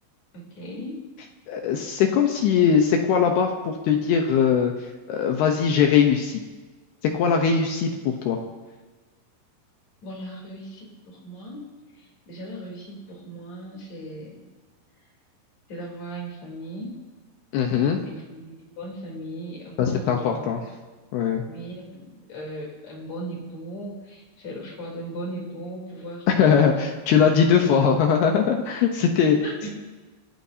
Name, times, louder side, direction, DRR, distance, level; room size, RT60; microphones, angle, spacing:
voice 1, 0.3-1.0 10.0-11.6 11.9-14.4 15.7-17.0 18.1-20.4 21.5-26.8 29.4-29.7, right 1 dB, 40° left, -2 dB, 4.4 m, -37 dB
voice 2, 1.5-4.7 5.1-6.4 7.1-8.4 17.5-18.0 19.8-20.6 21.1-21.4 26.3-29.4, left 7 dB, 70° left, 3 dB, 2.6 m, -20 dB
28.0 x 14.5 x 2.8 m, 1.3 s
omnidirectional pair, 5.4 m